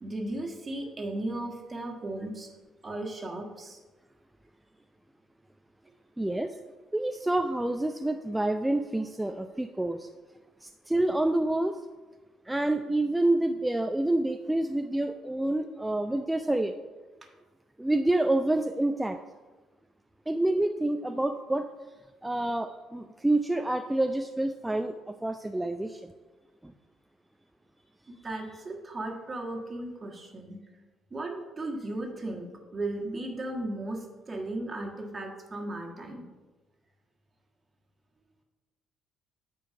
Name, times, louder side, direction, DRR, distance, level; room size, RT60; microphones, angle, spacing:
voice 1, 0.0-2.5 2.8-3.8 28.1-30.6 31.1-36.3, right 2 dB, 30° right, 1 dB, 1.5 m, -36 dB
voice 2, 6.2-6.5 6.9-10.1 10.6-11.8 12.5-16.7 17.8-19.2 20.3-21.6 22.2-26.1 26.6-26.7, right 1 dB, 10° right, 6 dB, 0.4 m, -28 dB
8.9 x 4.7 x 5.1 m, 1.2 s
figure-of-eight pair, 45°, 0 cm